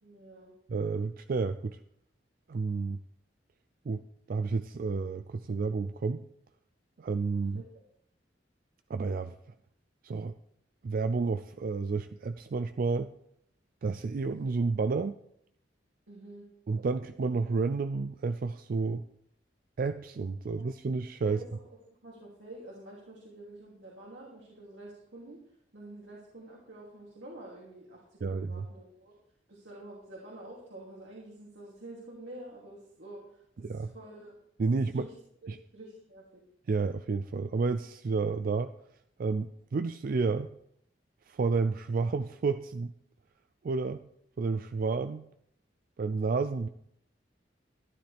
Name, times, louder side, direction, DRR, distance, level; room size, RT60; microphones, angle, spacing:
voice 1, 0.0-0.5 7.5-7.8 16.1-16.4 20.4-20.6 21.2-21.5 22.0-25.4 25.7-29.1 29.5-34.4 34.9-35.1 35.7-36.4, right 1 dB, 75° right, -4 dB, 2.9 m, -48 dB
voice 2, 0.7-1.8 2.5-3.0 3.9-4.0 4.3-6.2 7.0-7.6 8.9-9.4 10.0-10.3 10.8-13.1 13.8-15.2 16.7-19.0 19.8-21.4 28.2-28.7 33.6-33.9 34.6-35.1 35.5-35.6 36.7-38.7 39.2-40.5 41.3-42.9 43.6-44.0 44.4-45.3 46.0-46.7, right 4 dB, 50° right, 10 dB, 0.4 m, -30 dB
13.0 x 11.5 x 3.4 m, 0.73 s
head